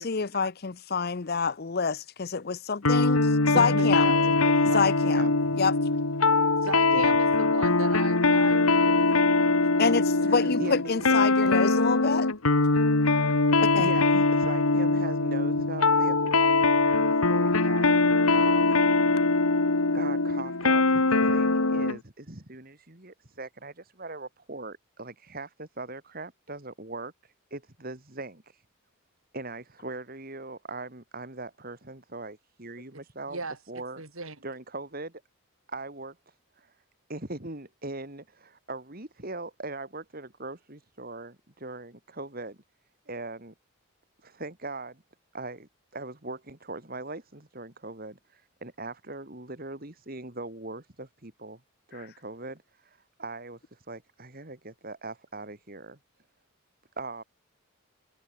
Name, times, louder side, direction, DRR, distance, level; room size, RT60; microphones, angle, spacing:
voice 1, 0.0-4.1 4.7-5.3 5.5-5.7 9.8-12.3 13.6-13.9, left 5 dB, 45° left, 0.6 m, -27 dB
sound 1, 2.8-22.0, left 3 dB, 80° left, 2.0 m, -22 dB
voice 2, 3.5-5.6 6.9-7.1 10.2-11.1 13.8-18.8 19.9-28.6 29.3-33.4 33.7-34.0 34.4-35.2 35.7-36.7 37.1-42.6 43.1-43.5 44.2-45.0 45.3-51.6 51.9-56.0 57.0-57.2, right 2 dB, 45° right, 2.5 m, -40 dB
voice 3, 6.6-10.0 10.4-10.9 32.9-33.0 33.3-34.4, right 3 dB, 75° right, 6.1 m, -38 dB
head